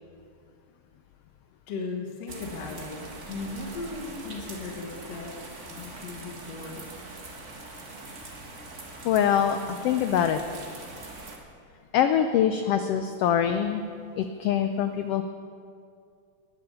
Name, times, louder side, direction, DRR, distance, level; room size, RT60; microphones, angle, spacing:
voice 1, 1.7-3.0 3.3-5.4 5.7-6.8, left 3 dB, 65° left, 0 dB, 2.4 m, -37 dB
sound 1, 2.3-11.4, right 2 dB, 35° right, 1.3 m, -42 dB
voice 2, 9.0-10.4 11.9-13.8 14.2-15.2, left 9 dB, 80° left, 8 dB, 1.3 m, -24 dB
19.0 x 7.7 x 7.0 m, 2.3 s
omnidirectional pair, 3.4 m